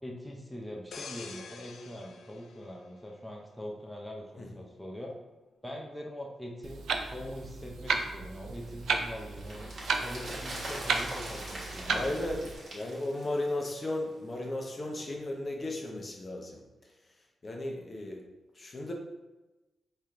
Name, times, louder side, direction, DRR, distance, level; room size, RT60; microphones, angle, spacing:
voice 1, 0.0-5.1 5.6-6.8 7.1-9.7 10.0-12.3, equal, ahead, -1 dB, 0.7 m, -42 dB
sound 1, 0.9-3.6 4.0-4.3, left 5 dB, 80° left, 0.4 m, -47 dB
Clock, 6.6-12.5, right 5 dB, 90° right, 0.4 m, -34 dB
sound 2, 8.6-14.0 14.3-14.4, right 1 dB, 60° right, 1.5 m, -42 dB
voice 2, 11.8-16.6 17.4-18.2 18.6-18.9, left 1 dB, 40° left, 0 dB, 0.9 m, -35 dB
4.3 x 3.4 x 3.7 m, 1.1 s
cardioid pair, 70°, 0 cm